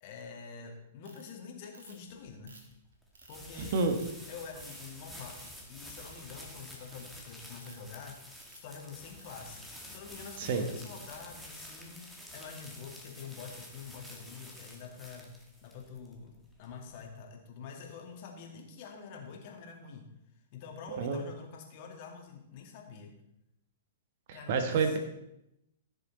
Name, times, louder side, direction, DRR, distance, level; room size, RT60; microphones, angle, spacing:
voice 1, 0.0-2.6 3.3-3.9 4.3-8.2 8.5-15.3 15.6-20.1 20.5-23.1 24.3-25.0, left 6 dB, 45° left, 2 dB, 2.3 m, -47 dB
Ratchet pawl, 1.0-1.3 1.7-2.1 2.5-3.4 3.9-4.1 4.6-4.9 5.3-5.6 5.9-6.2 6.7-7.1 7.5-7.9 8.3-8.6 9.2-9.5 10.1-10.4 11.0-11.3, right 4 dB, 70° right, 2.4 m, -55 dB
sound 1, 2.1-17.0, equal, 5° right, 2.0 m, -50 dB
voice 2, 3.6-4.0 10.4-10.6 20.9-21.2 24.3-25.0, right 4 dB, 55° right, 7 dB, 1.5 m, -29 dB
15.0 x 6.7 x 4.1 m, 0.84 s
figure-of-eight pair, 110°, 0 cm